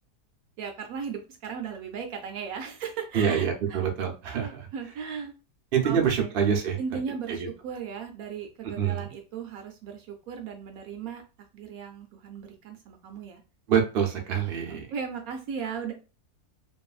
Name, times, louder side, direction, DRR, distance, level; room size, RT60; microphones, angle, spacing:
voice 1, 0.6-3.9 4.3-5.3 5.8-6.3 6.8-11.2 11.5-13.4 14.7-15.9, right 6 dB, 70° right, 4 dB, 1.0 m, -37 dB
voice 2, 3.1-4.7 5.7-6.8 7.3-7.5 8.8-9.0 13.7-14.9, right 7 dB, 55° right, 2 dB, 0.6 m, -26 dB
2.9 x 2.6 x 2.4 m, 0.32 s
omnidirectional pair, 1.7 m